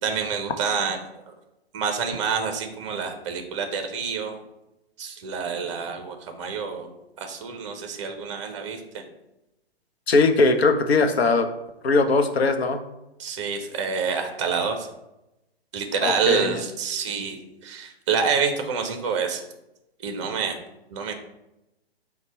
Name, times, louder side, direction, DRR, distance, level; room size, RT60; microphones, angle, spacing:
voice 1, 0.0-1.0 1.7-4.4 5.0-6.9 7.2-9.0 13.2-14.9 15.7-19.4 20.0-20.6 20.9-21.2, right 6 dB, 30° right, 5 dB, 0.5 m, -27 dB
voice 2, 10.1-11.5 11.8-12.8 16.0-16.5, left 3 dB, 75° left, 7 dB, 0.6 m, -20 dB
4.0 x 2.1 x 4.4 m, 0.92 s
figure-of-eight pair, 130°, 31 cm